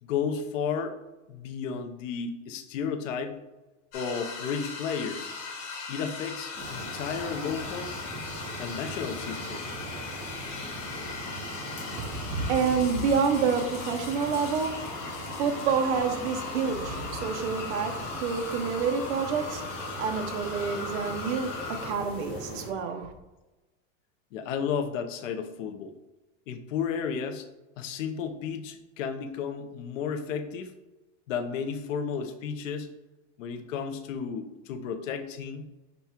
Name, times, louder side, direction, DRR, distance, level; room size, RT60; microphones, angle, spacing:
voice 1, 0.0-0.9 1.3-3.4 3.9-5.3 5.9-7.9 8.6-9.8 22.3-22.4 24.3-25.9 26.5-27.5 27.8-30.7 31.3-32.9 33.4-35.6, left 6 dB, 85° left, 0.8 m, -33 dB
sound 1, 3.9-21.9, left 4 dB, 40° left, 1.1 m, -38 dB
sound 2, 6.5-22.7, right 1 dB, 15° left, 0.7 m, -40 dB
voice 2, 12.0-19.6 20.0-23.1, right 5 dB, 60° right, 0.8 m, -28 dB
5.3 x 2.3 x 4.3 m
supercardioid pair, 175°, 38 cm